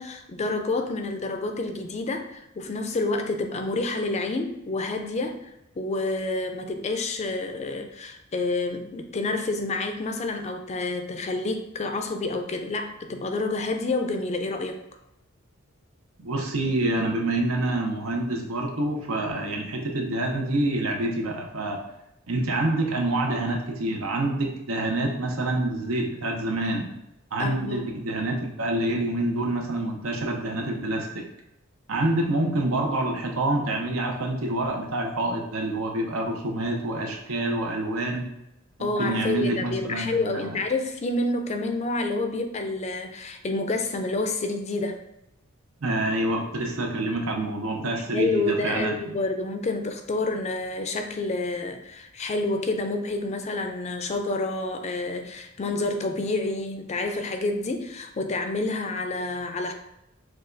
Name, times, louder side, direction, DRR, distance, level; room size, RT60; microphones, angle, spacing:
voice 1, 0.0-14.8 27.4-27.9 38.8-45.0 48.1-59.7, left 2 dB, 35° left, 6 dB, 0.4 m, -28 dB
voice 2, 16.2-21.8 22.3-26.9 27.3-31.3 31.9-38.2 38.8-40.5 45.8-49.2, right 1 dB, 85° right, 1 dB, 0.8 m, -27 dB
6.3 x 2.3 x 2.6 m, 0.87 s
head